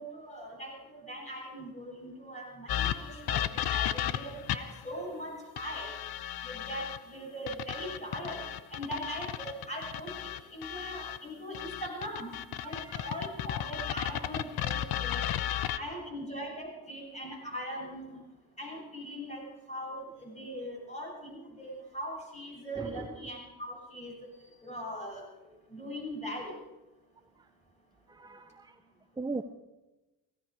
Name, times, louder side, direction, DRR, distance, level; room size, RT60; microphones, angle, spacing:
voice 1, 0.0-5.9 6.4-8.4 8.7-12.4 12.6-15.3 15.8-18.2 18.6-24.3 24.6-25.3 25.7-26.5, equal, 20° left, -1 dB, 7.8 m, -40 dB
sound 1, 2.7-4.8 5.6-7.0 7.5-11.2 11.5-15.8, left 11 dB, 70° left, 0.8 m, -34 dB
voice 2, 12.6-13.2 15.4-15.8 22.8-23.1 28.1-28.8 29.2-29.4, right 3 dB, 10° right, 9 dB, 0.7 m, -40 dB
16.5 x 16.5 x 4.9 m, 1.1 s
cardioid pair, 75°, 38 cm